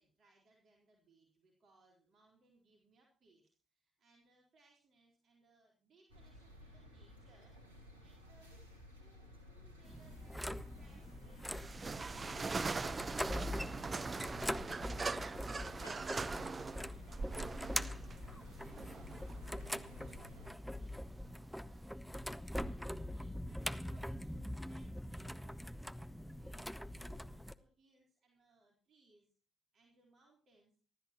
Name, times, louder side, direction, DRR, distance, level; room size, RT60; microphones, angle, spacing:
voice 1, 0.0-8.6 9.0-13.8 16.6-21.9 22.3-29.3 29.7-30.8, right 2 dB, 50° right, 0 dB, 4.2 m, -70 dB
sound 1, 6.1-20.5, left 1 dB, 85° right, 2.2 m, -56 dB
sound 2, 9.8-27.5, equal, ahead, 1.1 m, -43 dB
sound 3, 11.5-21.9, right 4 dB, 35° right, 0.8 m, -42 dB
26.0 x 13.0 x 3.0 m, 0.38 s
figure-of-eight pair, 40°, 0 cm